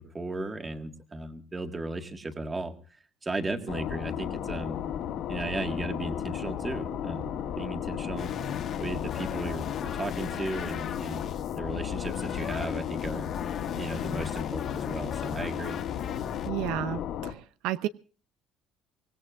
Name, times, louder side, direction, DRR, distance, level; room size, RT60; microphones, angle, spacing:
voice 1, 0.0-2.7 3.2-4.8 5.3-8.3 8.8-11.3 11.6-13.3 13.7-15.8, right 2 dB, 15° right, 6 dB, 1.8 m, -35 dB
sound 1, 3.7-17.3, left 9 dB, 60° left, 2.2 m, -34 dB
sound 2, 8.2-16.5, left 8 dB, 40° left, 1.7 m, -39 dB
voice 2, 16.5-17.3 17.6-17.9, right 14 dB, 80° right, 13 dB, 0.7 m, -31 dB
24.5 x 18.5 x 2.5 m, 0.41 s
cardioid pair, 160°, 0 cm